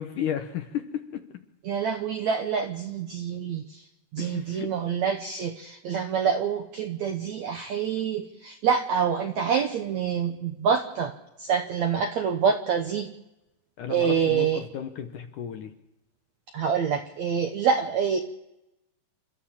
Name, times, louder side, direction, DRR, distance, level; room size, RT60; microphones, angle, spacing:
voice 1, 0.0-1.4 4.2-4.7 13.8-15.7, left 9 dB, 70° left, 6 dB, 2.2 m, -34 dB
voice 2, 1.7-3.8 4.1-11.1 11.4-13.1 13.9-14.6 16.5-18.2, right 7 dB, 70° right, 5 dB, 1.7 m, -26 dB
29.0 x 13.0 x 7.3 m, 0.91 s
omnidirectional pair, 4.6 m